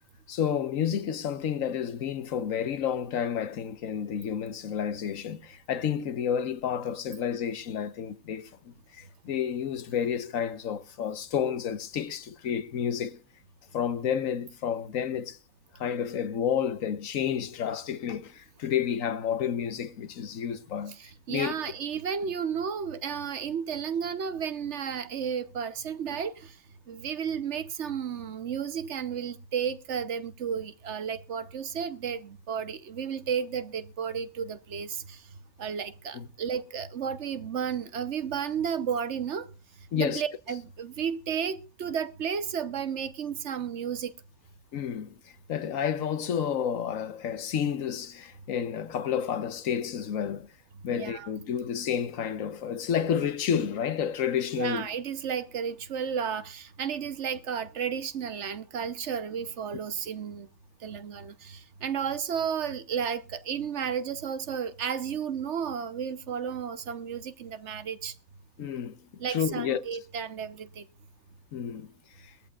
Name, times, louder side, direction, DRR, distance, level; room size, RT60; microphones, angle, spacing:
voice 1, 0.3-13.2 13.7-15.4 15.7-20.9 21.3-21.5 36.1-36.3 39.9-40.2 44.7-45.1 45.5-50.5 50.8-54.9 68.6-69.0 69.3-69.8 71.5-71.9 72.2-72.3, left 8 dB, 85° left, 1.3 m, -30 dB
voice 2, 20.9-26.6 26.9-35.3 35.6-39.5 40.0-44.1 50.9-51.3 54.6-60.5 60.8-68.1 69.2-70.9, right 7 dB, 65° right, 1.1 m, -33 dB
21.5 x 14.0 x 2.4 m
omnidirectional pair, 1.4 m